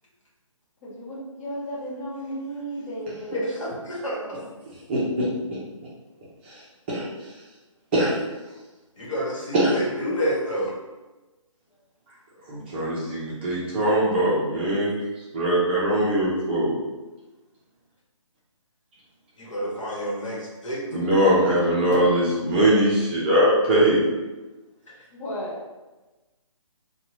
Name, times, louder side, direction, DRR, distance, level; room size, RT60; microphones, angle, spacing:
voice 1, 0.8-3.4 25.1-25.5, equal, 25° left, -7 dB, 0.7 m, -34 dB
voice 2, 3.3-4.4 7.9-8.1 9.0-10.7 19.4-21.1 24.9-25.0, equal, 65° left, -4 dB, 1.1 m, -29 dB
voice 3, 4.9-5.3 6.9-7.0 7.9-8.1 9.5-9.7 12.5-15.0 15.3-16.8 20.9-24.0, right 1 dB, 20° right, -8 dB, 0.5 m, -21 dB
2.7 x 2.2 x 3.0 m, 1.1 s
hypercardioid pair, 155°, 17 cm